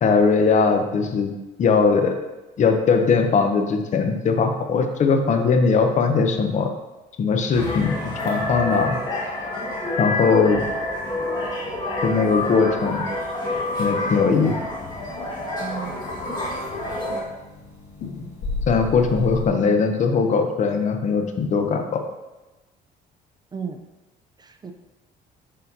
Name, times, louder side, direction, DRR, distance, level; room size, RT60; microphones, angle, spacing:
voice 1, 0.0-1.3 1.6-2.2 2.6-6.7 7.2-8.0 8.2-9.0 10.0-10.6 12.0-13.1 13.8-14.5 18.7-22.0, left 5 dB, 45° left, 5 dB, 0.7 m, -20 dB
sound 1, 7.5-17.2, left 1 dB, 25° left, 1.8 m, -28 dB
sound 2, 13.7-19.5, left 5 dB, 80° left, 1.9 m, -35 dB
voice 2, 15.6-16.0 17.1-17.3 23.5-23.8 24.4-24.7, right 6 dB, 25° right, 5 dB, 0.5 m, -34 dB
6.5 x 5.4 x 2.8 m, 1.1 s
cardioid pair, 110°, 17 cm